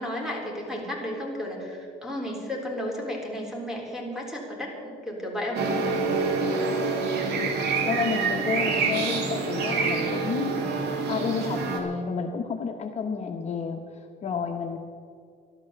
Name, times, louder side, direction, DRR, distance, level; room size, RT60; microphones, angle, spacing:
voice 1, 0.0-5.6, left 1 dB, 5° right, -1 dB, 3.7 m, -33 dB
sound 1, 5.5-11.8, right 4 dB, 75° right, 2.3 m, -26 dB
voice 2, 7.8-10.6 11.1-14.8, left 5 dB, 40° left, 3 dB, 1.1 m, -30 dB
12.5 x 11.5 x 7.0 m, 2.2 s
cardioid pair, 110°, 17 cm